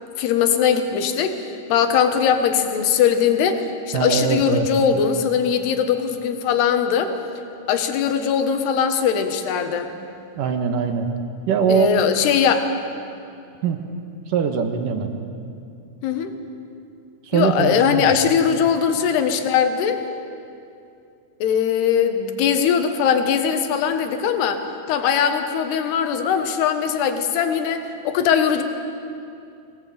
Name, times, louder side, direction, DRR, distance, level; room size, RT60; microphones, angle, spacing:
voice 1, 0.2-7.1 7.7-9.9 11.7-12.7 16.0-16.4 17.3-20.0 21.4-28.6, left 7 dB, 75° left, 7 dB, 3.4 m, -20 dB
voice 2, 3.9-4.7 10.4-11.1 11.5-11.9 13.6-13.8 14.3-15.1 17.3-18.1, right 6 dB, 65° right, 5 dB, 2.6 m, -21 dB
24.0 x 18.5 x 8.7 m, 2.5 s
omnidirectional pair, 4.9 m